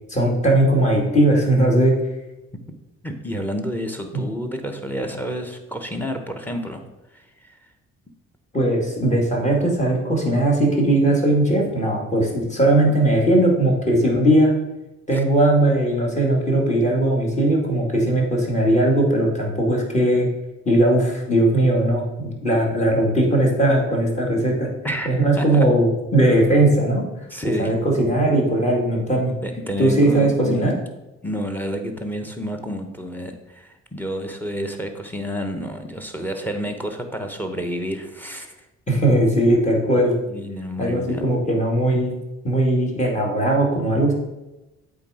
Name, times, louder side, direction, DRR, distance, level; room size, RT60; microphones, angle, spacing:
voice 1, 0.1-1.9 4.1-4.2 8.5-14.6 15.1-20.3 20.7-24.7 25.0-27.0 27.4-29.4 29.8-30.7 38.9-40.2 40.8-42.1 42.4-44.1, right 1 dB, 25° left, -1 dB, 2.1 m, -19 dB
voice 2, 3.0-6.8 7.1-7.6 15.1-15.2 24.8-25.7 27.3-27.8 29.4-30.7 31.2-38.5 40.3-41.3, equal, 5° left, 6 dB, 1.0 m, -30 dB
8.2 x 3.9 x 4.9 m, 1.0 s
cardioid pair, 90°, 30 cm